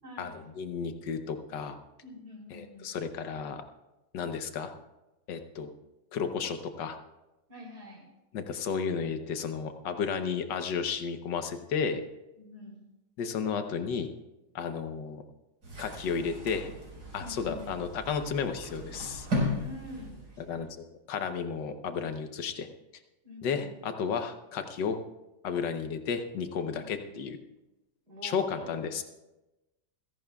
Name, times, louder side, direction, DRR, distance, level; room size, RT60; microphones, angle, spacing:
voice 1, 0.0-0.5 2.0-2.9 7.5-8.1 12.4-12.8 17.2-17.6 19.5-20.7 23.2-23.7 26.8-27.1 28.1-28.8, equal, 65° right, -2 dB, 4.0 m, -45 dB
voice 2, 0.6-1.8 2.5-3.6 4.1-4.7 5.3-5.7 6.1-7.0 8.3-12.0 13.2-14.1 14.5-15.2 15.8-16.7 17.1-19.3 20.4-22.7 23.4-25.0 25.4-27.4 28.2-29.0, left 6 dB, 85° left, 8 dB, 1.6 m, -33 dB
sound 1, 15.6-20.6, left 1 dB, 80° right, 5.2 m, -36 dB
29.0 x 11.0 x 2.3 m, 1.0 s
omnidirectional pair, 1.9 m